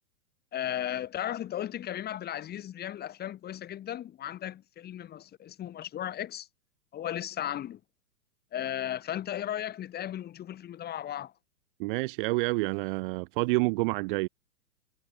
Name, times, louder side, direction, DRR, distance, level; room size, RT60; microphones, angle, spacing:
voice 1, 0.5-6.5 6.9-7.8 8.5-11.3, left 11 dB, 20° left, 1.6 m, -35 dB
voice 2, 11.8-14.3, right 26 dB, 35° right, 0.7 m, -28 dB
hypercardioid pair, 120°, 47 cm